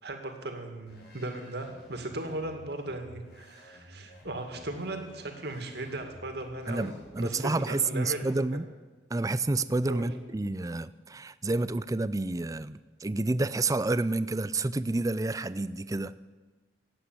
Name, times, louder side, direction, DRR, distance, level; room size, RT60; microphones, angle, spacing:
voice 1, 0.0-8.6 9.9-10.1, right 2 dB, 60° right, 5 dB, 2.2 m, -37 dB
sound 1, 0.9-7.7, equal, 55° left, 5.3 m, -54 dB
voice 2, 6.7-8.7 9.1-16.2, right 2 dB, 20° right, 16 dB, 0.4 m, -29 dB
16.5 x 8.5 x 9.5 m, 1.3 s
head